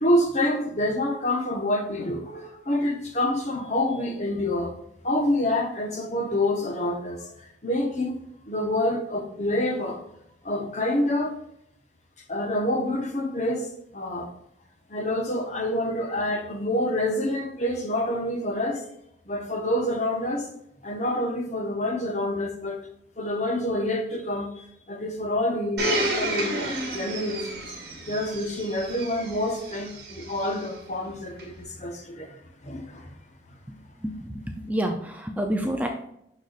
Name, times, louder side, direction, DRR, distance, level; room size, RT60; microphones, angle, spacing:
voice 1, 0.0-4.7 5.0-7.3 7.6-8.2 8.5-10.0 10.4-11.4 12.3-14.3 14.9-18.8 19.3-20.5 20.8-22.8 23.2-27.6 28.1-32.4 32.6-33.1, left 1 dB, 40° left, 1.1 m, -27 dB
Domestic sounds home sounds, 25.8-30.6 31.4-31.5, right 1 dB, 60° right, 2.1 m, -31 dB
voice 2, 33.7-36.1, equal, 10° right, 0.5 m, -29 dB
6.5 x 6.4 x 2.5 m
head